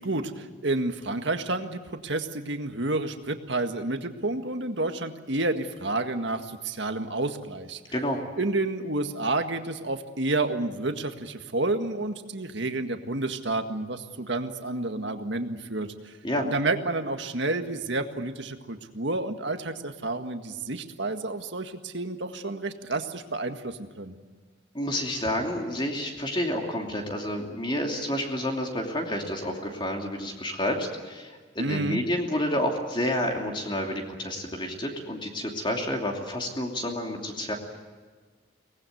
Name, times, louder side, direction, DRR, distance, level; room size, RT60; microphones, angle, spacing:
voice 1, 0.0-7.8 8.4-16.1 16.4-24.2 31.6-32.0, right 2 dB, 65° right, 6 dB, 1.8 m, -30 dB
voice 2, 24.7-37.5, left 1 dB, 25° left, 2 dB, 2.8 m, -29 dB
24.0 x 19.0 x 9.3 m, 1.4 s
head